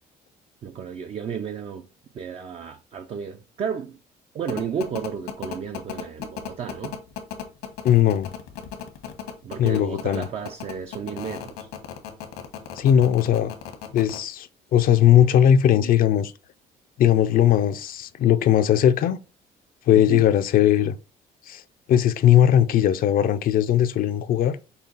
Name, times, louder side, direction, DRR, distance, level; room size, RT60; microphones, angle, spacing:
voice 1, 0.6-1.9 2.1-4.0 4.3-7.0 9.4-11.7 19.9-20.3, right 6 dB, 40° right, 0.4 m, -32 dB
sound 1, 4.5-14.2, left 10 dB, 90° left, 1.2 m, -35 dB
voice 2, 7.8-8.3 9.6-10.3 12.8-13.5 13.9-16.3 17.0-19.2 19.9-21.0 21.5-21.6 21.9-24.6, left 10 dB, 60° left, 0.4 m, -19 dB
5.5 x 2.3 x 3.9 m
cardioid pair, 110°, 17 cm